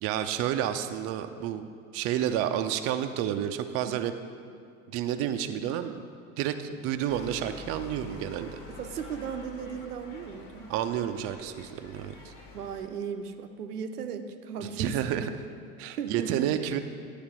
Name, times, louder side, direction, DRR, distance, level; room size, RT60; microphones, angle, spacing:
voice 1, 0.0-1.6 1.9-4.1 4.9-5.9 6.4-8.6 10.7-12.1 14.6-15.3 15.8-16.8, right 10 dB, 35° right, 8 dB, 0.4 m, -30 dB
sound 1, 7.1-12.9, left 3 dB, 50° left, 1.4 m, -47 dB
voice 2, 8.7-10.7 12.5-15.3 16.0-16.7, right 6 dB, 85° right, 7 dB, 0.6 m, -36 dB
9.5 x 3.3 x 6.0 m, 2.2 s
hypercardioid pair, 80°, 45 cm